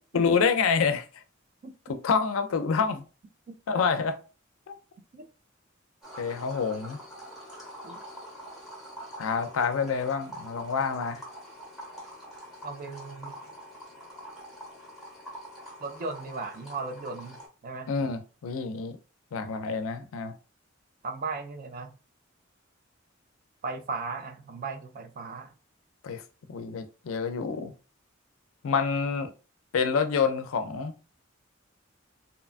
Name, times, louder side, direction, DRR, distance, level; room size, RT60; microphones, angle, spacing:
voice 1, 0.1-1.0 1.9-3.0 3.7-4.2 6.2-7.0 9.2-11.2 17.9-19.0 19.3-20.3 26.0-26.2 26.5-27.7 28.6-29.3 29.7-30.9, left 5 dB, 85° left, 0.4 m, -27 dB
sound 1, 6.0-17.5, equal, ahead, 1.0 m, -45 dB
voice 2, 12.6-13.4 15.8-17.4 17.6-18.0 21.0-21.9 23.6-25.5, right 4 dB, 45° right, 0.4 m, -36 dB
2.8 x 2.2 x 2.4 m
head